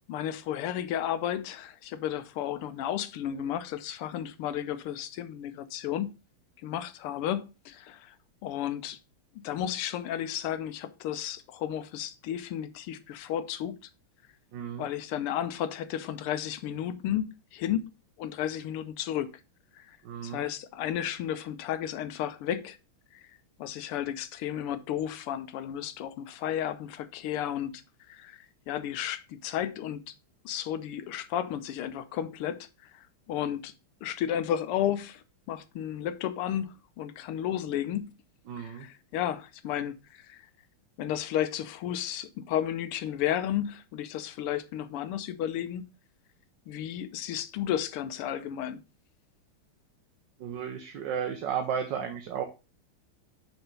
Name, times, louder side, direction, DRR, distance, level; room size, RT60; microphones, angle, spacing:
voice 1, 0.1-6.1 6.6-8.1 8.4-9.0 9.4-13.8 14.8-17.8 18.2-19.3 19.8-20.0 20.2-22.8 23.1-23.2 23.6-27.8 28.1-30.1 30.4-33.7 34.0-38.1 38.6-40.5 41.0-45.8 46.7-48.8, left 10 dB, 85° left, 1.7 m, -33 dB
voice 2, 14.5-14.9 20.0-20.4 38.5-38.9 50.4-52.4, right 7 dB, 65° right, 1.4 m, -33 dB
6.2 x 4.4 x 5.3 m
omnidirectional pair, 2.4 m